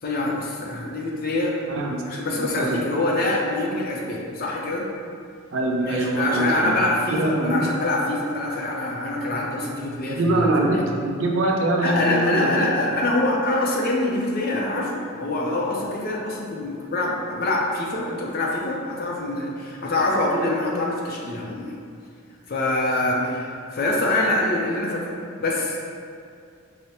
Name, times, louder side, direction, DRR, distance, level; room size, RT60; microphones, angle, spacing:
voice 1, 0.0-1.6 2.0-4.9 5.9-10.8 11.8-21.8 22.5-25.8, left 2 dB, 45° left, -2 dB, 0.4 m, -25 dB
voice 2, 1.7-2.0 2.3-2.9 5.5-6.8 7.1-7.6 10.0-12.7 23.1-23.3, right 2 dB, 60° right, 0 dB, 0.4 m, -23 dB
4.7 x 2.1 x 2.8 m, 2.4 s
head